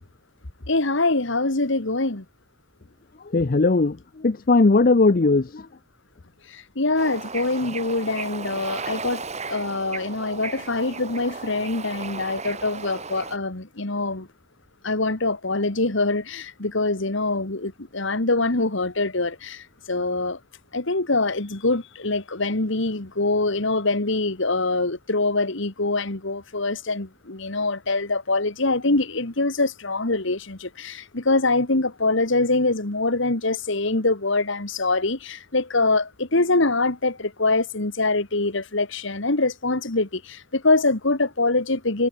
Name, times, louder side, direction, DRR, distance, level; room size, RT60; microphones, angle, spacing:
voice 1, 0.7-2.2 6.5-9.2 9.5-14.3 14.8-20.4 20.7-42.1, left 2 dB, 60° left, 1.9 m, -24 dB
voice 2, 3.3-4.0 4.2-5.6, left 3 dB, 40° left, 0.6 m, -18 dB
Bird / Ocean, 6.9-13.4, right 4 dB, 30° right, 3.5 m, -35 dB
head